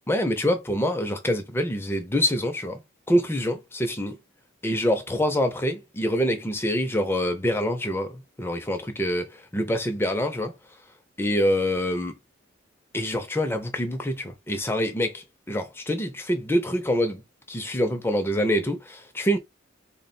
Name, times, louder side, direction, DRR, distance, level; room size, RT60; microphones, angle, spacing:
voice 1, 0.1-2.8 3.1-4.2 4.6-10.5 11.2-12.1 12.9-17.2 17.5-19.4, equal, 10° left, 0.6 m, -25 dB
3.4 x 2.2 x 4.1 m
head